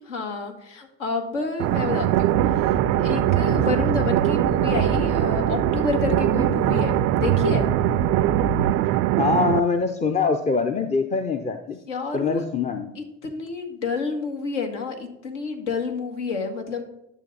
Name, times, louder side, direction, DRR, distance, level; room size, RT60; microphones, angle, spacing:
voice 1, 0.0-7.7 11.9-12.4 13.0-16.8, left 4 dB, 70° left, 5 dB, 1.6 m, -29 dB
sound 1, 1.6-9.6, right 15 dB, 40° right, 0.4 m, -21 dB
sound 2, 2.1-8.7, left 4 dB, 50° left, 1.0 m, -32 dB
voice 2, 9.2-11.8 12.1-12.9, left 5 dB, 20° left, 6 dB, 0.6 m, -23 dB
10.5 x 6.6 x 4.0 m, 0.82 s
figure-of-eight pair, 60°, 38 cm